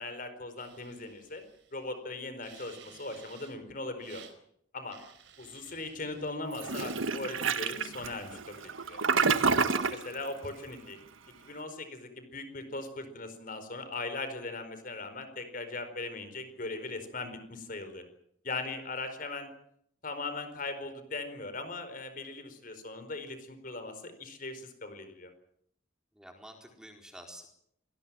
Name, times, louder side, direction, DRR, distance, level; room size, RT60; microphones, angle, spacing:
voice 1, 0.0-1.4 1.7-4.2 4.7-5.0 5.4-9.0 9.9-11.0 11.4-18.0 18.4-19.5 20.0-25.3, left 2 dB, 45° left, 9 dB, 4.6 m, -39 dB
sound 1, 0.6-1.9 2.4-3.6 4.0-4.3 4.9-6.4 6.6-7.0, right 8 dB, 65° right, 4.5 m, -55 dB
Toilet flush, 6.6-10.1, right 5 dB, 90° right, 1.5 m, -28 dB
voice 2, 9.7-10.0 26.1-27.5, equal, 5° right, 3 dB, 4.4 m, -49 dB
27.0 x 19.5 x 7.6 m, 0.69 s
head